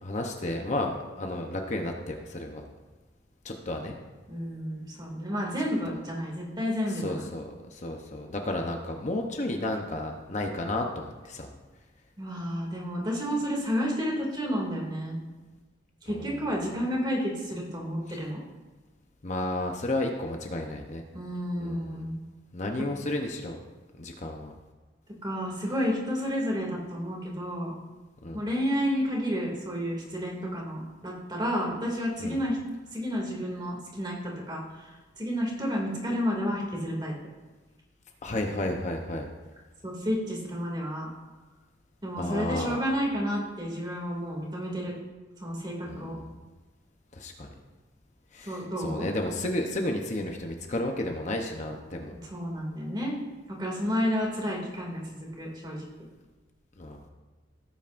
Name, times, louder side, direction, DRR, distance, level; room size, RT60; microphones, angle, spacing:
voice 1, 0.0-2.6 3.4-4.0 6.9-11.5 16.1-16.4 18.1-18.2 19.2-21.0 21.6-22.1 22.5-23.6 24.0-24.5 28.2-28.4 32.2-32.4 38.2-39.3 42.2-42.9 45.9-46.2 47.1-47.5 48.3-52.1 56.8-57.0, left 1 dB, 35° left, 3 dB, 0.8 m, -32 dB
voice 2, 4.3-7.2 12.2-15.2 16.0-18.4 21.1-22.2 25.2-27.7 28.3-32.6 32.9-37.1 39.8-41.1 42.0-44.9 45.4-46.2 48.5-49.1 52.2-53.2 53.5-55.9, equal, 20° right, -2 dB, 2.4 m, -31 dB
17.0 x 9.0 x 2.6 m, 1.3 s
head